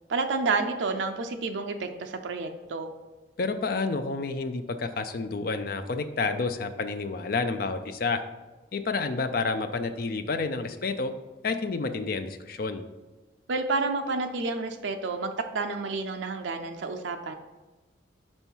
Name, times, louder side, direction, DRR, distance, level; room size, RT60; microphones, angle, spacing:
voice 1, 0.1-2.9 13.5-17.3, right 3 dB, 75° right, 5 dB, 0.5 m, -30 dB
voice 2, 3.4-8.2 8.7-11.1 11.4-12.8, left 4 dB, 50° left, 8 dB, 0.4 m, -29 dB
5.4 x 4.4 x 4.5 m, 1.2 s
head